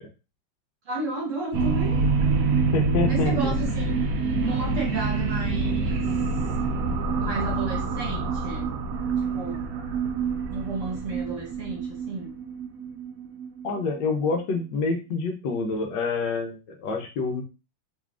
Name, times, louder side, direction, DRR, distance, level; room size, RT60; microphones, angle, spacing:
voice 1, 0.8-2.1 3.0-4.0 4.4-6.1 7.2-8.7 9.3-9.7 10.5-12.3, right 3 dB, 45° right, -2 dB, 1.3 m, -33 dB
sound 1, 1.5-14.4, right 4 dB, 75° right, 0.8 m, -26 dB
voice 2, 2.7-3.5 13.6-17.4, left 4 dB, 75° left, 3 dB, 1.4 m, -27 dB
3.8 x 3.2 x 2.4 m, 0.30 s
omnidirectional pair, 2.0 m